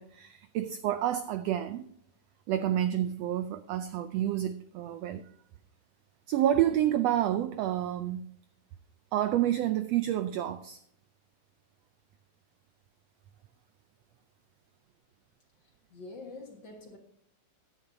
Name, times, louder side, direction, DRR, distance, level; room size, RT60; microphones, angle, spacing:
voice 1, 0.0-1.9 2.5-5.2 6.3-8.3 9.1-10.8, right 11 dB, 85° right, 1.4 m, -29 dB
voice 2, 15.9-17.0, left 3 dB, 45° left, 1.8 m, -45 dB
15.0 x 10.0 x 2.7 m
omnidirectional pair, 3.5 m